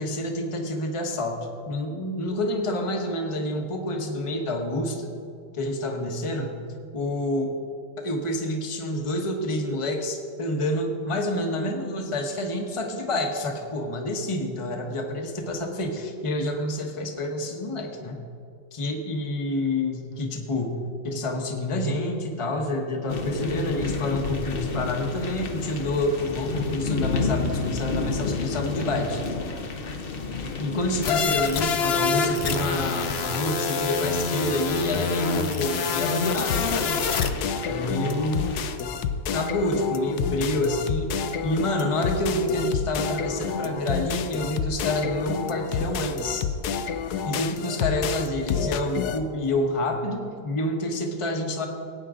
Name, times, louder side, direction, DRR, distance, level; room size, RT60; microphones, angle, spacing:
voice 1, 0.0-1.4 1.7-5.1 5.5-6.5 6.9-7.5 8.0-18.2 18.7-20.8 21.0-29.2 30.6-37.0 37.6-38.5 39.3-46.5 47.2-51.7, left 1 dB, 20° left, 2 dB, 1.0 m, -28 dB
sound 1, 23.1-38.7, left 4 dB, 50° left, 0.7 m, -32 dB
sound 2, 31.0-37.3, left 5 dB, 85° left, 0.5 m, -26 dB
sound 3, 36.2-49.2, left 6 dB, 65° left, 1.1 m, -29 dB
17.5 x 9.3 x 3.7 m, 2.4 s
omnidirectional pair, 2.1 m